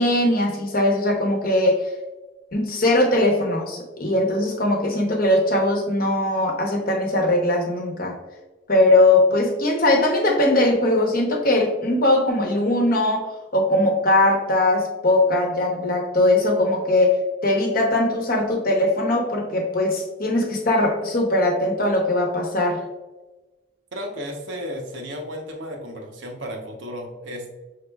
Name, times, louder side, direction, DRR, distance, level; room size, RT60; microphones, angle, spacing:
voice 1, 0.0-1.8 2.5-8.1 8.7-13.3 13.5-22.8, left 1 dB, 50° left, 0 dB, 0.9 m, -20 dB
voice 2, 23.9-27.5, equal, 75° right, 2 dB, 0.9 m, -33 dB
5.6 x 3.6 x 2.3 m, 1.1 s
head